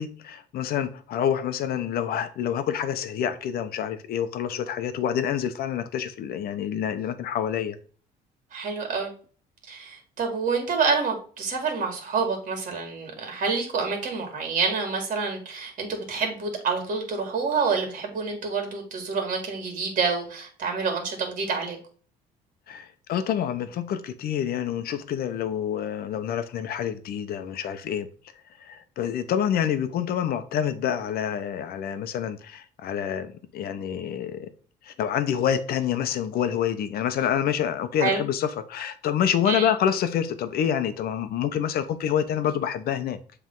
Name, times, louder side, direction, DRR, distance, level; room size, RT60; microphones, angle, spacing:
voice 1, 0.0-7.8 22.7-28.1 28.6-34.5 34.8-43.2, left 9 dB, 65° left, 0.8 m, -27 dB
voice 2, 8.5-9.1 9.7-21.8 38.0-38.2 39.4-39.7, right 5 dB, 50° right, 2.1 m, -27 dB
7.3 x 3.4 x 3.8 m
cardioid pair, 110°, 17 cm